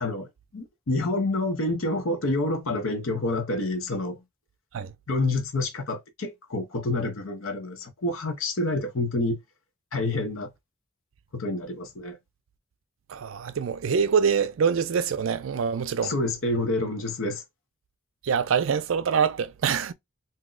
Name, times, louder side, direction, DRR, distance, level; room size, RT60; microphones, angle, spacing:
voice 1, 0.0-4.2 5.1-9.4 9.9-10.5 11.3-12.2 16.0-17.4, left 2 dB, 75° left, 0.8 m, -28 dB
voice 2, 13.1-16.1 18.2-19.9, right 6 dB, 70° right, 0.4 m, -25 dB
2.7 x 2.1 x 3.8 m
head